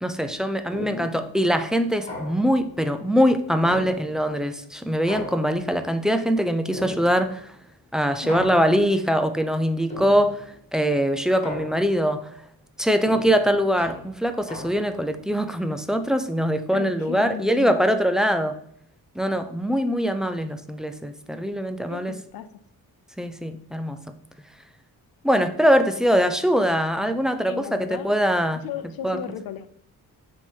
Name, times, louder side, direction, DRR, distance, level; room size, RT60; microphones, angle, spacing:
voice 1, 0.0-7.4 7.9-10.4 10.7-12.3 12.8-18.6 19.2-22.1 23.2-24.0 25.2-28.6 29.0-29.2, equal, ahead, 8 dB, 0.3 m, -22 dB
sound 1, 0.7-1.3 2.1-2.7 3.6-4.4 5.1-5.9 6.7-7.4 8.3-9.0 9.9-10.6 11.4-12.2 13.1-15.1, left 1 dB, 20° left, 2.0 m, -38 dB
voice 2, 0.8-1.2 8.2-8.5 16.7-17.7 21.9-22.5 27.5-28.1 28.6-29.7, left 9 dB, 85° left, 12 dB, 0.6 m, -35 dB
7.1 x 3.7 x 4.4 m, 0.68 s
wide cardioid pair, 155°, 34 cm